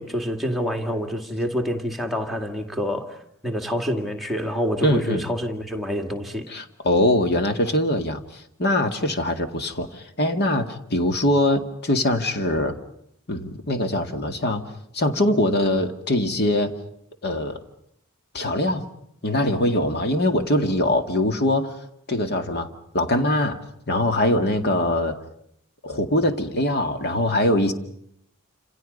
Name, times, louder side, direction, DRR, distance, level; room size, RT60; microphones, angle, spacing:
voice 1, 0.0-6.4, equal, ahead, 2 dB, 2.1 m, -27 dB
voice 2, 4.8-5.3 6.5-12.8 13.3-14.6 14.9-16.7 17.2-17.6 18.3-18.8 19.2-21.8 22.1-23.6 23.9-25.2 25.8-27.7, left 1 dB, 50° left, 6 dB, 2.1 m, -22 dB
28.5 x 27.5 x 5.4 m, 0.71 s
head